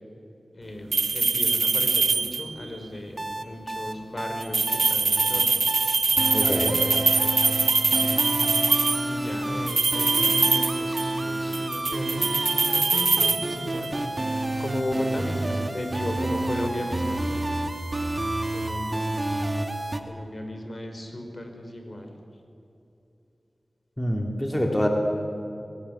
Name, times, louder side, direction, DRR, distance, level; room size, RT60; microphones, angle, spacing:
voice 1, 0.5-5.7 7.9-8.2 9.1-14.0 14.6-17.3 17.5-17.8 18.5-19.1 20.1-22.1, left 1 dB, 50° left, 4 dB, 4.6 m, -35 dB
sound 1, 0.9-2.7 4.4-9.1 9.7-11.2 11.5-14.0, right 4 dB, 85° right, 0.5 m, -23 dB
sound 2, 3.2-20.0, right 1 dB, 35° right, 2.5 m, -29 dB
voice 2, 6.3-6.8 24.0-24.9, equal, 20° left, 2 dB, 3.1 m, -26 dB
22.5 x 19.5 x 10.0 m, 2.8 s
cardioid pair, 40°, 0 cm